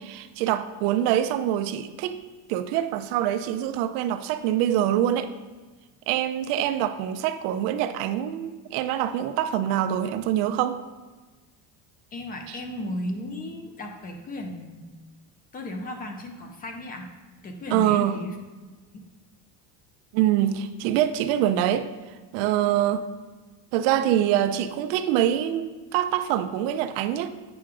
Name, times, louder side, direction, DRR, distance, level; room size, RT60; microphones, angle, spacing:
voice 1, 0.0-2.2 2.5-5.3 6.1-10.8 12.5-12.6 17.7-18.2 20.1-21.9 22.3-23.0 23.7-27.3, right 11 dB, 80° right, 10 dB, 0.6 m, -24 dB
voice 2, 12.1-14.8 15.5-17.1 17.4-18.4, left 1 dB, 20° left, 4 dB, 0.4 m, -35 dB
8.7 x 5.7 x 2.4 m, 1.3 s
cardioid pair, 160°, 47 cm